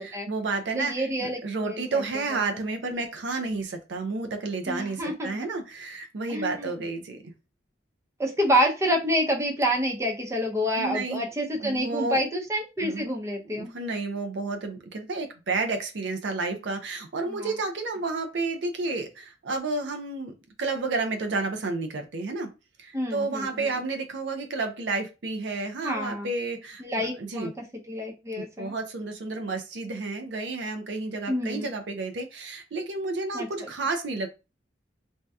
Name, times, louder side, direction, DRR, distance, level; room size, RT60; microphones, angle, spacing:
voice 1, 0.0-7.2 10.8-11.2 11.6-12.2 12.8-13.1 13.5-20.3 20.6-22.5 22.8-27.5 28.4-34.3, right 3 dB, 65° right, 5 dB, 0.5 m, -31 dB
voice 2, 0.8-2.0 4.7-5.3 6.3-6.7 8.2-13.7 17.3-17.5 22.9-23.7 25.8-26.3 26.8-27.5 27.9-28.7 31.3-31.7 33.3-33.5, equal, 15° right, 0 dB, 0.6 m, -28 dB
2.7 x 2.2 x 3.3 m, 0.28 s
head